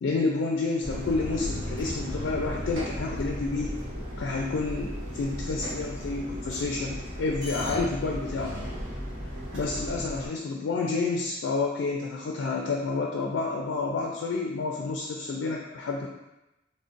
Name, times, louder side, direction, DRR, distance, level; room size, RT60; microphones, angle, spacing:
voice 1, 0.0-3.7 4.2-8.6 9.5-16.1, left 3 dB, 80° left, 0 dB, 0.3 m, -29 dB
sound 1, 0.8-10.3, equal, 70° right, 1.0 m, -35 dB
3.8 x 2.1 x 2.5 m, 0.97 s
head